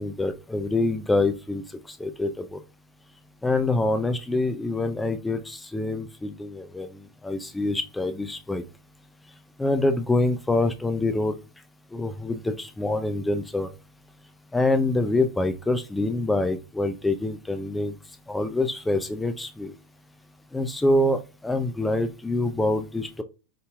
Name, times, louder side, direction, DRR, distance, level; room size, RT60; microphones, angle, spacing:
voice 1, 0.0-1.6 2.0-2.6 3.4-6.9 7.2-8.6 9.6-11.3 11.9-13.7 14.5-17.9 18.3-19.7 20.5-23.2, left 2 dB, 5° left, 0.6 m, -25 dB
5.2 x 4.2 x 2.3 m
figure-of-eight pair, 90°, 0 cm